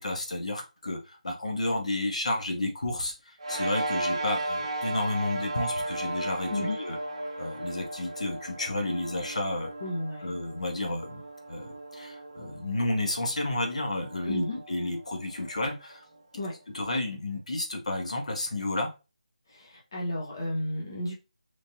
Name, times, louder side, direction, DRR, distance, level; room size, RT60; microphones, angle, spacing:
voice 1, 0.0-7.0 7.4-9.7 10.2-16.0 16.7-18.9, left 1 dB, 60° left, 0.9 m, -31 dB
sound 1, 3.4-16.1, right 1 dB, 35° right, 0.7 m, -36 dB
voice 2, 9.8-10.3 14.2-14.6 16.3-16.5 19.5-21.1, left 1 dB, 30° left, 0.8 m, -33 dB
3.1 x 2.7 x 2.6 m
figure-of-eight pair, 175°, 4 cm